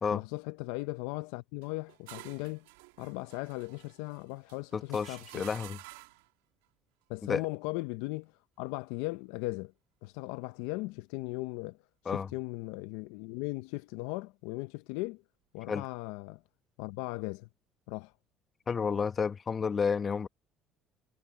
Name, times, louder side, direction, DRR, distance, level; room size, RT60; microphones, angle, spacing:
voice 1, 0.1-2.7 3.0-5.5 7.1-8.3 8.6-9.7 10.0-11.8 12.1-15.2 15.5-16.4 16.8-17.5 17.9-18.1, left 22 dB, 80° left, 0.6 m, -38 dB
sound 1, 1.6-6.3, right 20 dB, 90° right, 1.4 m, -51 dB
voice 2, 4.7-5.8 7.3-7.4 12.0-12.3 15.7-15.8 18.7-20.3, left 6 dB, 35° left, 1.4 m, -31 dB
supercardioid pair, 75°, 0 cm